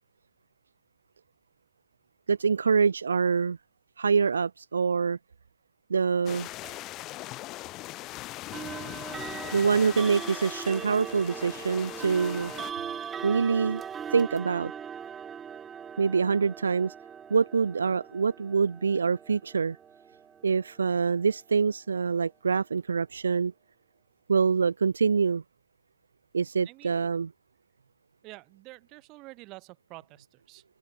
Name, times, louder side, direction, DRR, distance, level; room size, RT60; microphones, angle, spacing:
voice 1, 2.3-3.6 4.0-5.2 5.9-6.5 9.5-12.5 13.2-13.8 14.1-14.7 16.0-16.9 17.3-19.8 20.4-23.5 24.3-25.4 26.3-27.3, right 5 dB, 75° right, 0.4 m, -25 dB
sound 1, 6.3-12.7, left 18 dB, 30° left, 0.4 m, -40 dB
sound 2, 6.6-6.8 8.5-21.4, right 7 dB, 15° right, 1.3 m, -40 dB
voice 2, 26.6-27.1 28.2-30.6, right 22 dB, 35° right, 4.8 m, -48 dB
open air
figure-of-eight pair, 115°, 0 cm